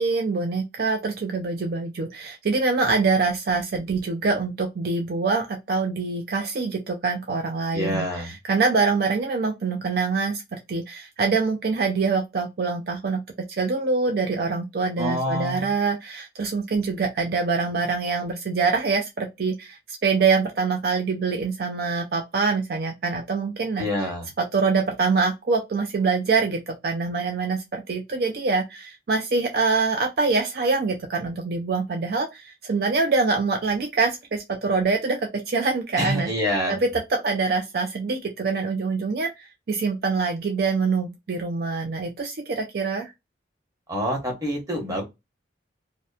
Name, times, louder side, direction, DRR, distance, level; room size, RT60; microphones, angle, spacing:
voice 1, 0.0-13.2 13.5-23.9 24.4-36.3 36.7-43.1, right 4 dB, 55° right, 0.4 m, -25 dB
voice 2, 7.7-8.3 15.0-15.7 23.8-24.3 36.0-36.8 43.9-45.0, equal, 20° right, 1.0 m, -26 dB
2.8 x 2.1 x 2.3 m
head